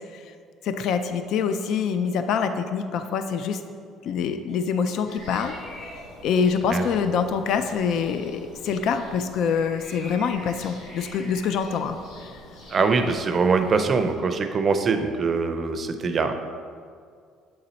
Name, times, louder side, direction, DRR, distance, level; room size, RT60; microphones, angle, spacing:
voice 1, 0.6-3.6 4.0-5.5 5.8-12.3, left 6 dB, 65° left, 9 dB, 0.4 m, -25 dB
sound 1, 5.1-14.1, left 1 dB, 85° left, 1.7 m, -44 dB
voice 2, 12.7-16.3, right 4 dB, 35° right, 7 dB, 0.5 m, -23 dB
7.7 x 4.0 x 4.2 m, 2.2 s
cardioid pair, 120°, 0 cm